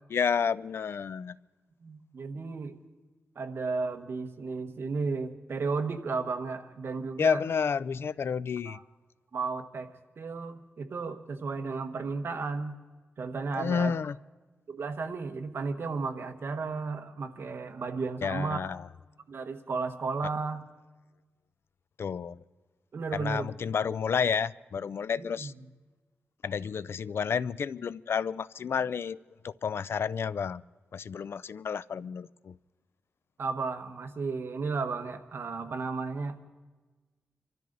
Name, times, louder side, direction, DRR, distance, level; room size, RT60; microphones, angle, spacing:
voice 1, 0.1-1.3 7.2-8.8 13.5-14.2 18.2-18.9 22.0-22.4 23.1-25.5 26.4-29.2 29.4-30.6 30.9-32.6, left 6 dB, 65° left, 18 dB, 0.4 m, -30 dB
voice 2, 1.8-2.8 3.4-7.4 8.7-8.8 9.3-9.9 10.2-12.8 13.2-13.9 14.7-18.6 19.3-20.6 22.9-23.5 25.2-25.5 33.4-36.4, right 4 dB, 60° right, 6 dB, 1.2 m, -33 dB
26.0 x 13.5 x 4.0 m, 1.3 s
wide cardioid pair, 105°, 4 cm